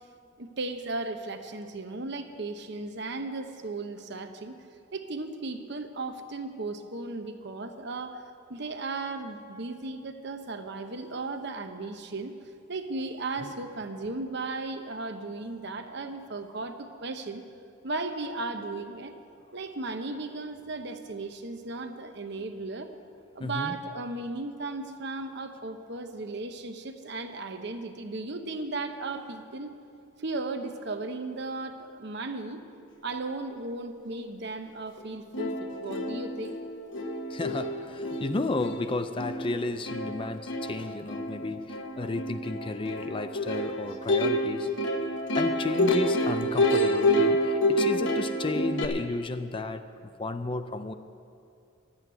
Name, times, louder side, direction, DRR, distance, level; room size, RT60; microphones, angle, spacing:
voice 1, 0.4-4.6 4.9-8.2 8.5-12.3 12.7-17.4 17.8-19.1 19.5-22.9 23.3-29.7 30.2-32.6 33.0-36.6, right 3 dB, 55° right, 7 dB, 0.9 m, -36 dB
voice 2, 23.4-23.8 37.3-44.7 45.3-50.9, left 2 dB, 25° left, 9 dB, 0.4 m, -33 dB
Plucked string instrument, 35.0-35.1 35.3-48.9, left 1 dB, 60° left, 1.1 m, -28 dB
12.5 x 8.1 x 9.4 m, 2.5 s
head